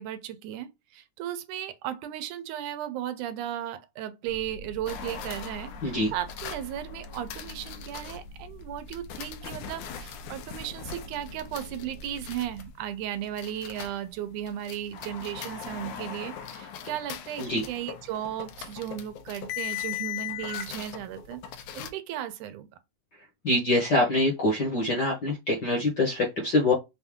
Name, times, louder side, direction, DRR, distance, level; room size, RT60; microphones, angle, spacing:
voice 1, 0.0-5.7 6.1-21.4 21.7-22.7, right 11 dB, 80° right, 2.2 m, -35 dB
sound 1, 4.3-12.7, left 1 dB, 65° right, 1.0 m, -45 dB
sound 2, 4.9-8.2 8.9-14.1 14.4-21.9, left 9 dB, 80° left, 2.2 m, -39 dB
voice 2, 5.8-6.1 17.4-17.6 23.4-26.7, left 2 dB, 50° left, 1.3 m, -24 dB
5.6 x 2.6 x 3.6 m
omnidirectional pair, 3.5 m